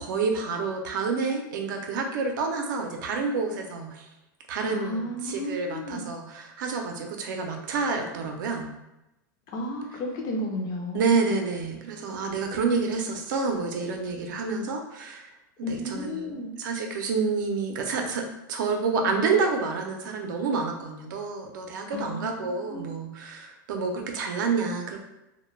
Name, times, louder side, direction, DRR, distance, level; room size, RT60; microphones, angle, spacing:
voice 1, 0.0-4.1 4.5-8.7 10.9-15.3 15.6-25.0, right 4 dB, 70° right, 3 dB, 0.5 m, -29 dB
voice 2, 4.7-6.0 9.5-11.4 15.6-16.5 21.9-22.9, left 1 dB, 35° left, -1 dB, 0.5 m, -33 dB
2.2 x 2.2 x 3.1 m, 0.94 s
supercardioid pair, 130°, 11 cm